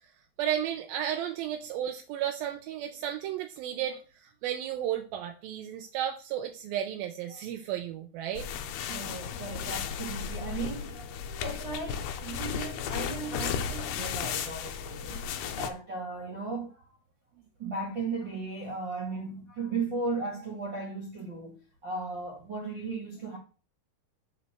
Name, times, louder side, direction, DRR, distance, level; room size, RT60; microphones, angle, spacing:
voice 1, 0.4-8.5 11.3-11.4, right 10 dB, 80° right, 2.3 m, -33 dB
sound 1, 8.4-15.7, left 7 dB, 80° left, 2.6 m, -35 dB
voice 2, 8.9-15.2 15.5-17.0 17.6-23.4, right 3 dB, 40° right, 1.9 m, -36 dB
8.3 x 4.3 x 6.5 m
omnidirectional pair, 4.7 m